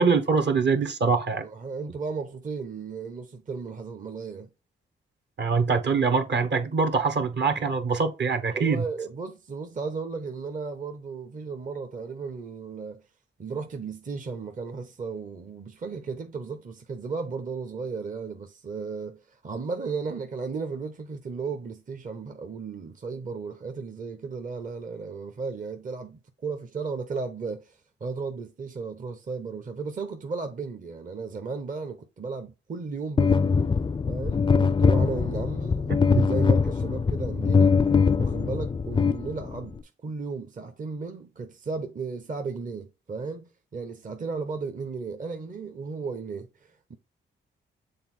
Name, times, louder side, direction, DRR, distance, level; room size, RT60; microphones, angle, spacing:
voice 1, 0.0-1.4 5.4-8.9, right 4 dB, 55° right, 1.2 m, -23 dB
voice 2, 1.4-4.5 8.5-13.0 13.4-33.5 34.1-37.8 38.2-46.9, right 4 dB, 40° right, 0.8 m, -35 dB
sound 1, 33.2-39.8, left 5 dB, 25° left, 0.4 m, -22 dB
6.8 x 3.6 x 4.2 m
supercardioid pair, 60°, 21 cm